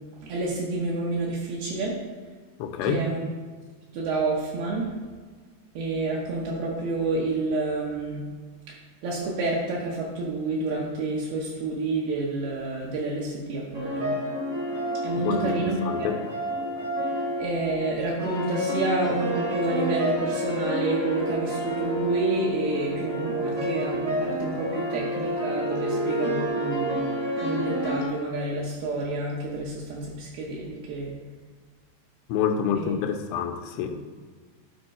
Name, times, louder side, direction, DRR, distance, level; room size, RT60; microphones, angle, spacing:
voice 1, 0.2-2.0 2.8-3.3 3.9-4.9 5.8-8.2 8.7-8.8 9.0-14.1 15.0-16.1 17.4-27.1 27.4-31.1 32.8-32.9, right 2 dB, 75° right, -4 dB, 2.8 m, -29 dB
voice 2, 2.6-3.1 15.2-16.2 32.3-34.0, left 7 dB, 85° left, 5 dB, 2.8 m, -27 dB
sound 1, 13.7-28.1, equal, 50° right, 0.9 m, -29 dB
11.0 x 4.5 x 4.2 m, 1.5 s
omnidirectional pair, 4.7 m